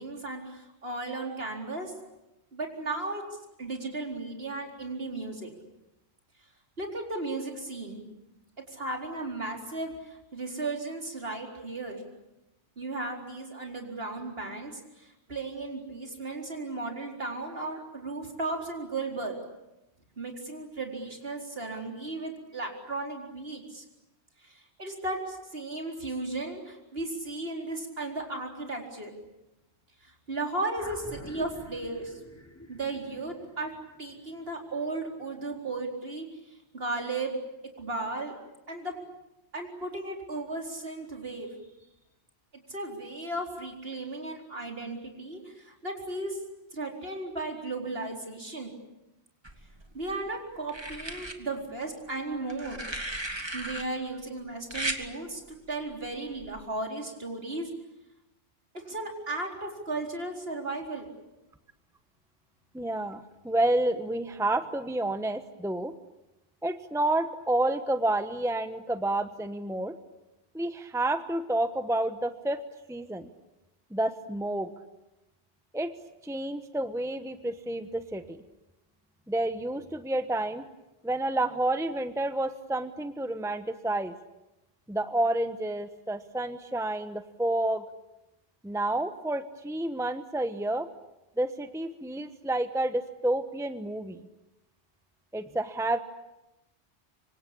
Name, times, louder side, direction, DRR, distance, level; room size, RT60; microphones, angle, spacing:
voice 1, 0.0-1.9 2.5-3.2 3.6-5.5 6.8-8.0 8.7-12.0 12.8-19.4 20.2-23.8 24.4-29.1 30.0-32.2 32.7-33.7 34.0-37.4 37.8-38.4 38.7-38.9 39.5-41.5 42.7-46.4 46.7-48.7 49.9-52.8 53.5-57.7 58.7-61.1, right 2 dB, 60° right, 2 dB, 4.5 m, -35 dB
sound 1, 30.8-35.4, equal, 15° left, 3.3 m, -45 dB
sound 2, 49.4-50.1 50.7-51.4 52.5-53.8 54.7-55.0 56.4-56.6, right 1 dB, 25° right, 2.2 m, -35 dB
voice 2, 62.7-65.9 66.6-70.0 70.5-72.6 72.9-73.3 73.9-74.7 75.7-75.9 76.2-78.4 79.3-80.6 81.0-84.1 84.9-87.8 88.6-90.9 91.4-94.2 95.3-96.0, right 1 dB, 5° right, 10 dB, 1.0 m, -29 dB
26.0 x 25.0 x 8.6 m, 0.94 s
omnidirectional pair, 1.1 m